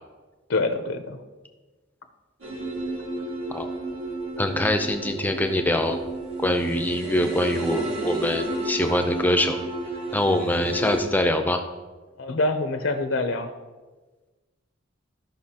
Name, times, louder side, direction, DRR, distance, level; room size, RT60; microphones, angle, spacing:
voice 1, 0.5-1.2 12.2-13.5, left 2 dB, 70° left, 8 dB, 0.7 m, -25 dB
sound 1, 2.4-11.0, right 1 dB, 80° right, 1.6 m, -31 dB
voice 2, 4.4-6.0 6.4-9.6 10.1-11.6, left 1 dB, 10° left, 6 dB, 0.5 m, -24 dB
14.5 x 5.6 x 2.9 m, 1.3 s
head